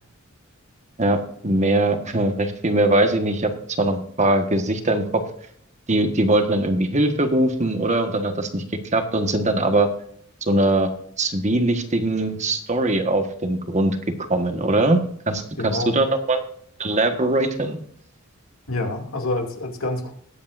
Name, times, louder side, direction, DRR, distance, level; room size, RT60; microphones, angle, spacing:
voice 1, 1.0-3.5 3.8-5.2 5.9-8.6 8.9-9.9 10.4-10.9 11.2-14.0 14.3-15.0 15.3-16.4 16.8-17.8, right 2 dB, 35° right, 6 dB, 1.4 m, -21 dB
voice 2, 15.6-16.0 18.7-20.1, left 2 dB, 75° left, 3 dB, 2.6 m, -27 dB
20.5 x 8.4 x 2.6 m, 0.64 s
head